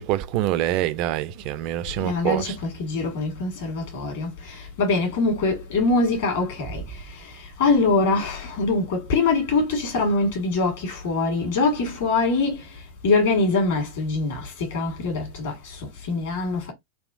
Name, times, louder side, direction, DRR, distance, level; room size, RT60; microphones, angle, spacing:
voice 1, 0.0-2.6, right 14 dB, 45° right, 0.4 m, -25 dB
voice 2, 2.0-4.3 4.8-6.8 7.6-12.5 13.0-15.5 16.1-16.7, left 3 dB, 55° left, 1.6 m, -23 dB
3.5 x 2.4 x 2.4 m
figure-of-eight pair, 90°, 0 cm